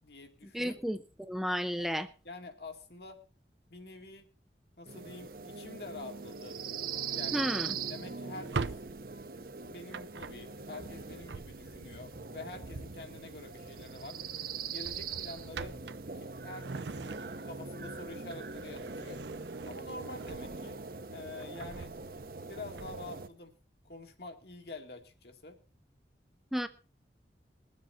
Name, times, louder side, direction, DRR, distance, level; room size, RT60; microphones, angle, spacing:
voice 1, 0.0-0.8 1.8-3.2 3.7-4.3 4.8-6.6 7.1-7.5 7.9-8.7 9.6-14.2 14.7-15.8 16.1-17.2 17.4-19.2 19.7-20.8 21.1-21.9 22.5-23.5 23.8-25.6, left 2 dB, 65° left, 4 dB, 2.2 m, -47 dB
voice 2, 0.5-2.1 7.3-7.8 26.5-26.7, equal, ahead, 9 dB, 0.5 m, -32 dB
sound 1, 4.8-23.3, right 5 dB, 55° right, 0.9 m, -41 dB
Drawer open or close, 8.3-12.0 13.5-13.8 14.1-14.3 14.7-17.7 18.1-20.8 21.3-23.2, right 4 dB, 75° right, 0.6 m, -43 dB
21.5 x 7.6 x 4.2 m, 0.35 s
head